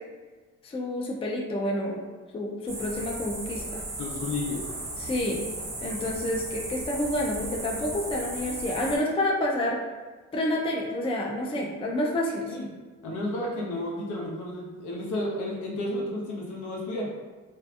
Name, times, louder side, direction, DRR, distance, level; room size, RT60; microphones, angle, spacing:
voice 1, 0.6-2.0 2.3-3.8 5.0-5.4 5.8-9.8 10.3-12.6, left 1 dB, 20° left, -1 dB, 0.4 m, -29 dB
sound 1, 2.7-9.0, right 2 dB, 30° right, 0.7 m, -36 dB
voice 2, 4.0-4.6 12.5-12.6 13.0-17.1, left 1 dB, 80° left, -3 dB, 0.7 m, -32 dB
2.7 x 2.4 x 2.3 m, 1.3 s
cardioid pair, 90°, 30 cm